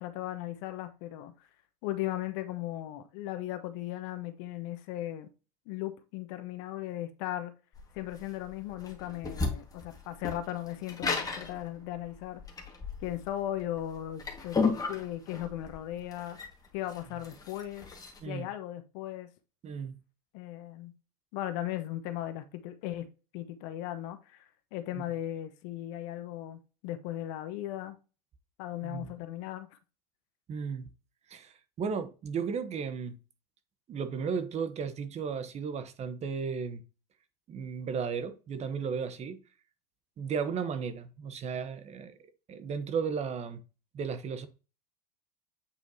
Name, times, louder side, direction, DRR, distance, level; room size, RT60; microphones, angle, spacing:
voice 1, 0.0-1.3 1.8-5.3 5.7-7.5 7.9-12.4 13.0-14.6 14.9-16.4 16.7-17.9 18.2-19.3 20.3-20.9 21.3-24.4 24.7-28.0 28.6-29.7, left 13 dB, 65° left, 1.0 m, -37 dB
sound 1, 7.7-18.2, left 4 dB, 20° left, 1.7 m, -34 dB
voice 2, 19.6-20.0 24.9-25.0 28.8-29.1 30.5-30.9 31.3-33.2 33.9-36.8 37.5-39.4 40.2-42.1 42.5-43.6 43.9-44.5, right 6 dB, 35° right, 0.9 m, -34 dB
8.4 x 4.5 x 2.8 m
supercardioid pair, 105°, 20 cm